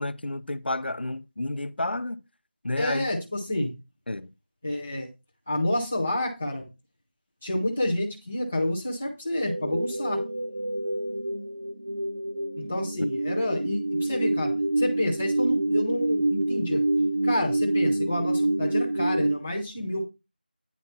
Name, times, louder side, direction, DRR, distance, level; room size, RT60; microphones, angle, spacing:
voice 1, 0.0-2.2 2.6-3.1 4.1-4.3, left 2 dB, 85° left, 0.7 m, -30 dB
voice 2, 2.8-3.7 4.6-5.1 5.5-6.7 7.4-10.2 12.6-16.8 17.2-20.0, left 1 dB, 5° left, 0.5 m, -29 dB
sound 1, 9.4-19.4, right 2 dB, 30° right, 0.7 m, -27 dB
9.4 x 4.5 x 5.5 m
figure-of-eight pair, 180°, 5 cm